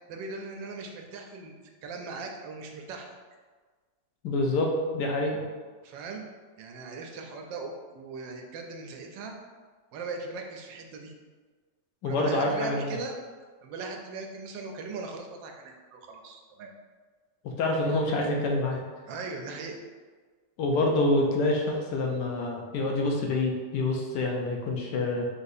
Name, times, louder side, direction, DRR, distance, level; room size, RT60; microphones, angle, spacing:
voice 1, 0.1-1.5 1.8-3.1 5.8-6.2 6.6-9.4 9.9-11.1 12.0-13.1 13.6-16.7 19.1-19.8, right 4 dB, 85° right, 3 dB, 1.3 m, -39 dB
voice 2, 4.2-4.7 4.9-5.4 12.0-13.0 17.6-18.8 20.6-25.3, left 2 dB, 75° left, 0 dB, 1.2 m, -27 dB
3.9 x 2.7 x 4.0 m, 1.5 s
omnidirectional pair, 1.9 m